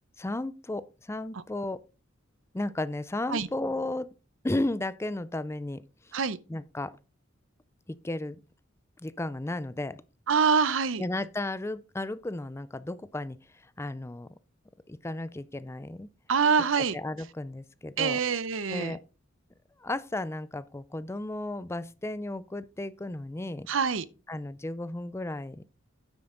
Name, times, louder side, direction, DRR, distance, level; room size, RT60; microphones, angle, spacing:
voice 1, 0.2-1.8 2.5-4.1 4.4-6.1 6.5-6.9 7.9-8.4 9.0-10.0 11.0-13.4 13.6-14.3 14.9-16.1 16.9-18.2 18.7-19.0 19.8-23.7 24.3-25.6, left 2 dB, 15° left, 0.4 m, -34 dB
voice 2, 10.3-11.0 16.3-17.0 18.0-19.0 23.7-24.0, right 6 dB, 75° right, 0.7 m, -25 dB
9.7 x 7.7 x 3.8 m
head